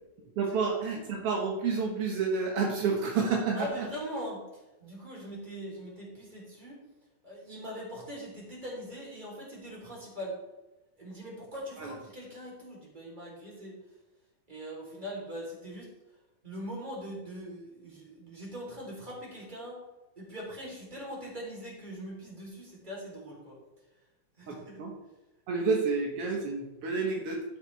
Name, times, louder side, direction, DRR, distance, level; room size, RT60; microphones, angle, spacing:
voice 1, 0.4-3.9 11.8-11.9 24.5-24.9 25.5-27.4, right 4 dB, 85° right, 1 dB, 1.2 m, -29 dB
voice 2, 3.5-6.8 7.2-10.4 11.0-13.8 14.5-15.9 16.4-19.9 20.1-23.6 24.4-24.8, equal, 10° right, -4 dB, 3.3 m, -41 dB
12.0 x 8.1 x 3.4 m, 1.0 s
omnidirectional pair, 4.4 m